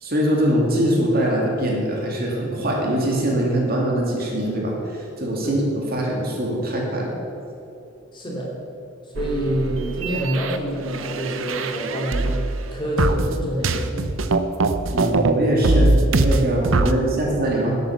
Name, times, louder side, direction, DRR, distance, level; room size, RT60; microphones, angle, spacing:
voice 1, 0.0-7.1 14.9-17.8, right 1 dB, 50° right, -2 dB, 2.5 m, -22 dB
voice 2, 8.1-8.5 9.1-12.4 12.7-14.1, equal, 25° left, -3 dB, 2.6 m, -26 dB
sound 1, 9.2-12.6 13.0-15.3 15.6-16.9, right 2 dB, 85° right, 0.7 m, -22 dB
11.5 x 8.1 x 7.1 m, 2.7 s
head